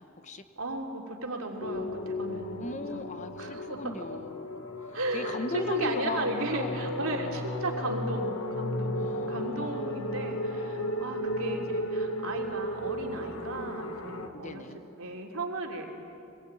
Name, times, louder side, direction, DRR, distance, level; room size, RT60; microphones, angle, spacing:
voice 1, 0.0-0.4 2.6-7.5 8.9-10.0 14.3-14.8, left 2 dB, 35° left, 9 dB, 1.0 m, -38 dB
voice 2, 0.6-3.0 3.4-4.0 4.9-14.6 15.0-15.9, right 2 dB, 75° right, 1 dB, 3.3 m, -35 dB
sound 1, 1.6-14.3, left 1 dB, 75° left, 1.6 m, -34 dB
25.0 x 20.0 x 8.9 m, 2.7 s
head